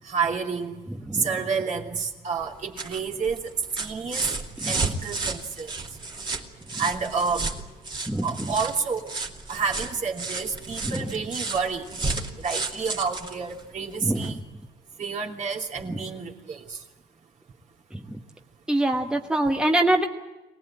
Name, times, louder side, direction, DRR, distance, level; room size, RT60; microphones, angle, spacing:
voice 1, 0.0-0.8 1.1-3.4 3.8-4.3 4.7-5.7 6.8-7.5 8.2-9.1 9.5-11.9 12.4-14.4 15.0-16.8, right 5 dB, 45° right, 1 dB, 3.0 m, -29 dB
voice 2, 0.9-1.3 4.6-4.9 6.7-6.8 8.1-8.5 10.8-11.1 14.0-14.4 15.9-16.0 17.9-18.2 18.7-20.1, right 1 dB, 5° right, 3 dB, 1.3 m, -25 dB
sound 1, 2.4-14.4 15.7-15.8, right 3 dB, 25° right, 2.5 m, -33 dB
24.0 x 18.5 x 8.9 m, 1.1 s
cardioid pair, 110°, 17 cm